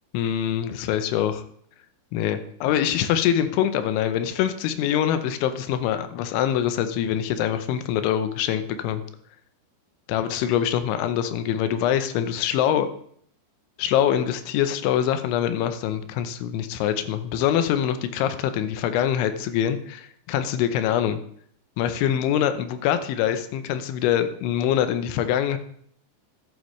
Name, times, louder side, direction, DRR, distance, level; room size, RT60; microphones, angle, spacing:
voice 1, 0.1-1.4 2.1-9.0 10.1-12.9 13.8-21.2 21.8-25.6, left 10 dB, 80° left, 10 dB, 3.1 m, -24 dB
13.0 x 11.5 x 3.2 m, 0.64 s
omnidirectional pair, 5.5 m